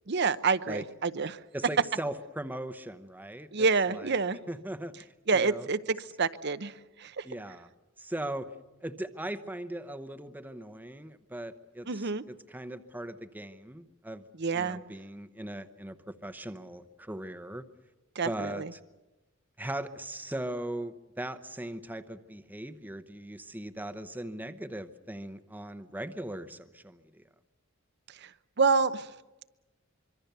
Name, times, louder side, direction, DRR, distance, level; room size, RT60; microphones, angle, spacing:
voice 1, 0.1-1.4 3.5-4.4 5.3-7.3 11.9-12.2 14.4-14.8 18.2-18.7 28.1-28.3 28.6-29.1, right 4 dB, 55° right, 13 dB, 0.8 m, -28 dB
voice 2, 1.5-4.1 4.5-5.7 7.2-7.7 8.0-8.5 8.8-14.2 14.5-17.6 18.2-18.8 19.6-27.2, right 1 dB, 10° right, 10 dB, 0.9 m, -39 dB
25.0 x 23.5 x 6.8 m, 1.1 s
head